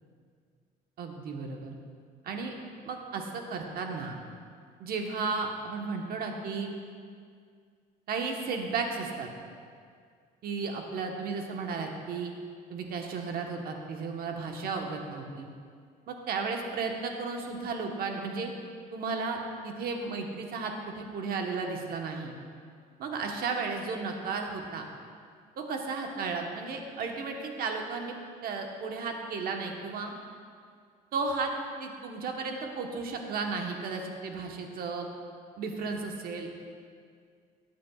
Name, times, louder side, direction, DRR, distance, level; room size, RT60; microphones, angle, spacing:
voice 1, 1.0-1.8 2.2-2.5 2.8-4.2 4.8-6.8 8.1-9.3 10.4-12.3 12.7-15.5 16.1-18.5 18.9-19.4 19.6-22.3 23.0-24.8 25.6-28.2 28.4-30.1 31.1-31.5 31.8-35.1 35.6-36.5, right 4 dB, 60° right, 2 dB, 1.1 m, -34 dB
13.5 x 8.5 x 2.4 m, 2.1 s
cardioid pair, 110°, 17 cm